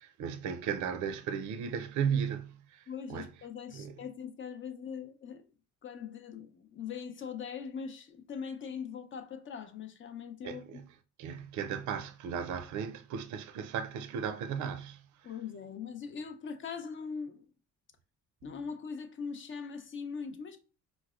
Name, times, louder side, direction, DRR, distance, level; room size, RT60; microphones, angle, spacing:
voice 1, 0.0-3.3 3.7-3.9 10.4-10.8 11.2-15.3, right 7 dB, 75° right, 0.4 m, -36 dB
voice 2, 2.9-5.4 5.8-10.8 15.2-17.4 18.4-20.6, left 6 dB, 40° left, 0.6 m, -41 dB
4.5 x 2.1 x 2.4 m
cardioid pair, 90°, 30 cm